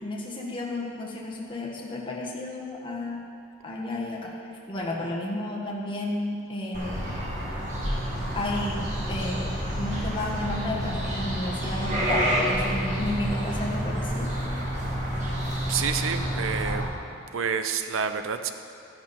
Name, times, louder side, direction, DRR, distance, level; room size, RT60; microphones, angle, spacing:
voice 1, 0.0-3.3 3.6-4.3 4.7-7.1 8.3-14.3, left 1 dB, 25° left, -3 dB, 1.5 m, -32 dB
sound 1, 6.7-16.8, equal, 35° right, 2.1 m, -29 dB
voice 2, 15.7-16.8 17.3-18.5, right 6 dB, 85° right, 9 dB, 0.7 m, -28 dB
12.5 x 10.5 x 4.3 m, 2.4 s
head